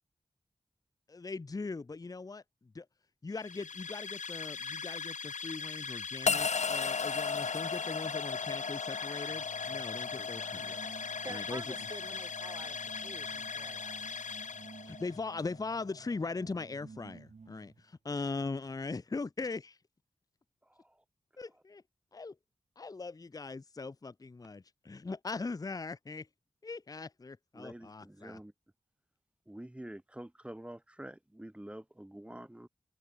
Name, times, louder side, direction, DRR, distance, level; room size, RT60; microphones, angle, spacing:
voice 1, 1.1-2.9 3.2-11.8 14.8-19.8 21.4-21.8 22.1-22.4 22.8-26.3 26.6-28.4, left 3 dB, 30° left, 0.6 m, -40 dB
sound 1, 3.3-15.2, left 6 dB, 80° left, 2.4 m, -41 dB
sound 2, 6.3-16.6, left 5 dB, 65° left, 1.9 m, -37 dB
sound 3, 9.3-17.9, right 4 dB, 65° right, 4.2 m, -54 dB
voice 2, 10.1-10.8 20.6-21.0 27.5-28.5 29.5-32.7, right 1 dB, 10° right, 2.0 m, -48 dB
voice 3, 11.2-14.4, right 2 dB, 25° right, 2.0 m, -48 dB
wide cardioid pair, 90°, 13 cm